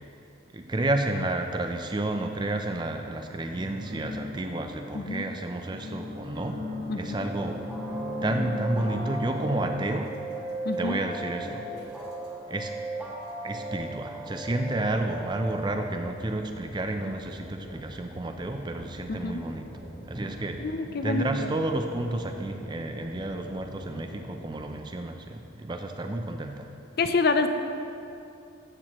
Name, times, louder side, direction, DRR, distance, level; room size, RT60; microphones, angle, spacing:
voice 1, 0.5-6.6 6.9-7.6 8.2-10.1 10.8-11.6 12.5-12.7 13.4-19.7 20.1-20.7 21.0-26.7, right 2 dB, 20° right, 5 dB, 0.5 m, -31 dB
sound 1, 3.0-3.1 3.5-5.2 5.6-10.8 11.8-11.9 12.2-12.3, left 1 dB, 50° right, 1.5 m, -37 dB
voice 2, 4.9-5.3 6.9-7.3 10.6-11.0 19.1-19.4 20.6-21.6 27.0-27.5, left 3 dB, 50° left, 8 dB, 0.4 m, -27 dB
sound 2, 7.2-15.7, right 2 dB, 5° right, 1.2 m, -37 dB
sound 3, 14.4-24.8, right 1 dB, 30° left, 1.9 m, -45 dB
13.5 x 8.0 x 3.0 m, 2.8 s
head